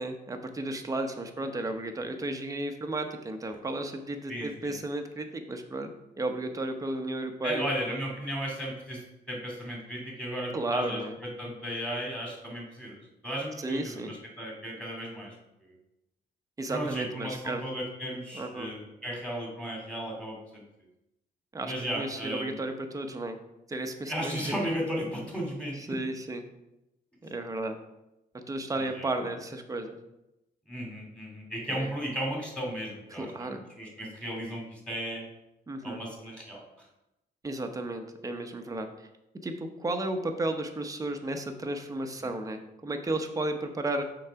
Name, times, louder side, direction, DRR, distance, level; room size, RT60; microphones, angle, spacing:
voice 1, 0.0-5.9 6.2-8.0 10.5-11.2 13.6-14.1 16.6-17.6 18.3-18.7 21.5-23.4 23.7-24.5 25.8-26.4 27.3-27.8 28.3-30.0 31.7-31.9 33.1-33.6 35.7-36.0 37.4-39.1 39.4-44.0, right 2 dB, 20° right, 5 dB, 0.8 m, -33 dB
voice 2, 4.3-4.7 7.4-15.3 15.6-15.8 16.7-20.6 21.6-22.6 24.1-26.0 28.8-29.1 30.7-35.2 35.8-36.6, equal, 5° left, -2 dB, 2.6 m, -35 dB
6.4 x 3.9 x 5.7 m, 0.90 s
cardioid pair, 115°, 18 cm